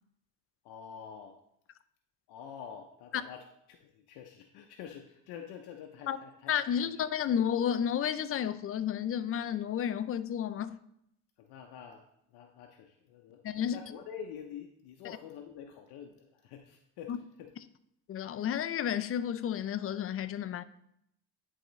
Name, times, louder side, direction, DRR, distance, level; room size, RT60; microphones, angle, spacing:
voice 1, 0.6-1.4 2.3-6.5 6.9-7.0 11.4-12.0 12.3-17.5, left 8 dB, 80° left, 0.7 m, -47 dB
voice 2, 6.5-10.8 13.4-13.8 17.1-17.2 18.1-20.6, left 9 dB, 35° left, 0.4 m, -31 dB
10.0 x 3.7 x 3.1 m
supercardioid pair, 85°, 37 cm